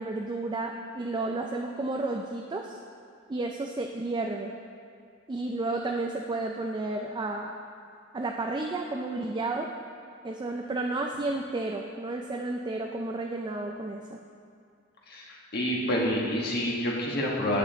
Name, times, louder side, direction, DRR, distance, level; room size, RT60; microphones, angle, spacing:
voice 1, 0.0-2.8 3.3-4.5 5.3-7.6 8.1-9.7 10.2-14.2, right 2 dB, 20° right, 2 dB, 0.4 m, -32 dB
voice 2, 15.1-17.6, equal, 50° left, -3 dB, 1.3 m, -28 dB
9.2 x 7.4 x 3.8 m, 2.3 s
head